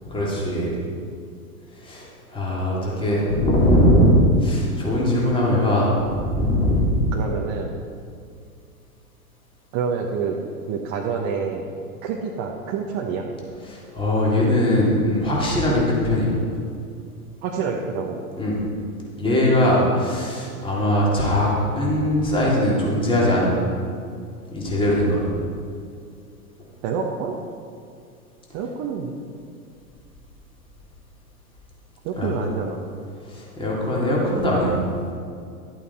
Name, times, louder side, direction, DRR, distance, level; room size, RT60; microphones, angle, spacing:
voice 1, 0.0-0.7 1.7-7.0 13.7-16.3 18.4-18.6 19.2-23.5 24.5-25.3 32.2-32.3 33.3-34.8, left 1 dB, 10° left, -5 dB, 3.0 m, -20 dB
voice 2, 7.1-7.7 9.7-10.4 10.7-11.7 12.0-13.2 17.4-18.2 26.8-27.3 28.5-29.2 32.0-32.8, right 6 dB, 40° right, 0 dB, 1.1 m, -27 dB
12.0 x 8.4 x 4.2 m, 2.3 s
figure-of-eight pair, 100°, 45 cm